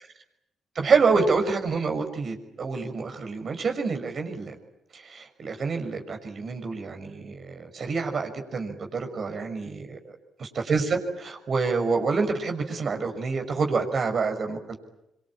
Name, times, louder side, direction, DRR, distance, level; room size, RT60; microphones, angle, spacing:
voice 1, 0.7-4.5 4.9-9.9 10.4-14.8, right 4 dB, 55° right, 4 dB, 6.2 m, -27 dB
25.5 x 25.0 x 8.9 m, 0.85 s
hypercardioid pair, 45°, 0 cm